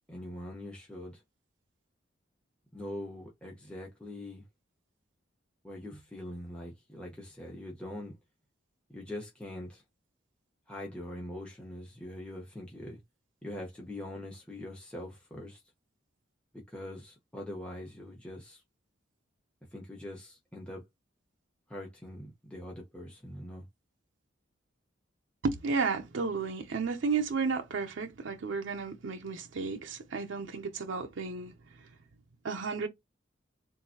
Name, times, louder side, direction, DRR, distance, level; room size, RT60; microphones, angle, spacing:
voice 1, 0.1-1.2 2.7-4.5 5.6-8.1 8.9-9.8 10.7-13.0 13.4-15.6 16.7-18.6 19.7-20.8 21.7-23.7, left 1 dB, 5° left, 1.0 m, -43 dB
voice 2, 25.4-31.5 32.4-32.9, right 4 dB, 75° right, 0.6 m, -33 dB
3.8 x 2.5 x 2.8 m
head